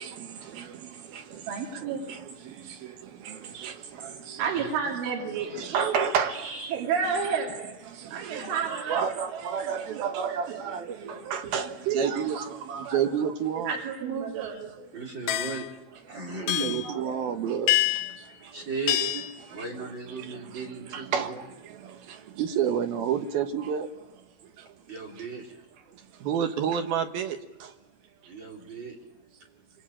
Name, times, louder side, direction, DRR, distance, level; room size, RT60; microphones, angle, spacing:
voice 1, 0.0-3.7 4.0-4.4 5.3-6.8 7.0-7.1 7.9-8.5 8.9-13.8 14.4-14.5 16.1-18.7 19.0-19.7 20.1-24.7 25.2-25.3 25.9-27.7, right 8 dB, 65° right, 2.8 m, -32 dB
voice 2, 1.5-2.1 4.4-6.0 6.7-7.8 8.1-9.1 9.3-10.6 10.9-12.2 12.9-13.0 13.5-14.9, right 6 dB, 80° right, 5.3 m, -32 dB
voice 3, 14.9-15.7 16.1-16.8 18.5-19.0 19.5-21.4 24.9-25.6 28.3-28.9, right 3 dB, 25° right, 3.8 m, -36 dB
sound 1, 15.3-15.7 16.5-16.9 17.7-18.2 18.9-19.4, left 14 dB, 75° left, 3.8 m, -26 dB
26.0 x 25.5 x 8.8 m
omnidirectional pair, 5.5 m